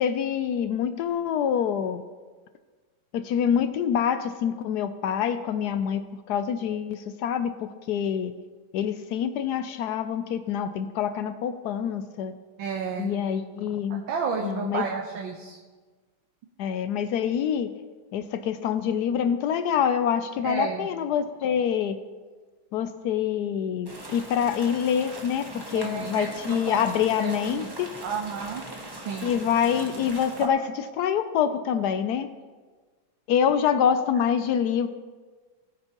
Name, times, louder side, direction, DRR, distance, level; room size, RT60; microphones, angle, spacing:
voice 1, 0.0-2.0 3.1-8.3 8.7-12.3 13.0-14.0 14.4-14.8 16.6-17.7 18.1-22.0 22.7-27.9 29.2-32.3 33.3-34.9, left 8 dB, 75° left, 11 dB, 0.9 m, -26 dB
voice 2, 12.6-13.1 13.9-15.6 20.4-20.9 25.7-26.8 27.2-27.7 28.0-28.6 28.9-29.3, right 5 dB, 75° right, 0 dB, 1.7 m, -32 dB
sound 1, 23.9-30.5, right 1 dB, 15° right, 0.8 m, -40 dB
18.5 x 8.9 x 3.0 m, 1.4 s
omnidirectional pair, 2.2 m